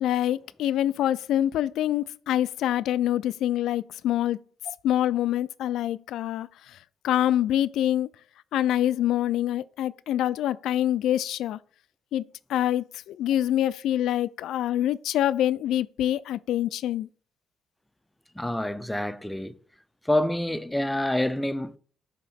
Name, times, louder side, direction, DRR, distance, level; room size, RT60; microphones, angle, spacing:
voice 1, 0.0-4.4 4.8-6.8 7.0-8.1 8.5-11.6 12.1-17.1, left 12 dB, 80° left, 0.3 m, -25 dB
voice 2, 18.4-19.5 20.0-21.8, left 1 dB, 5° left, 0.5 m, -27 dB
6.7 x 3.0 x 5.7 m
cardioid pair, 90°, 0 cm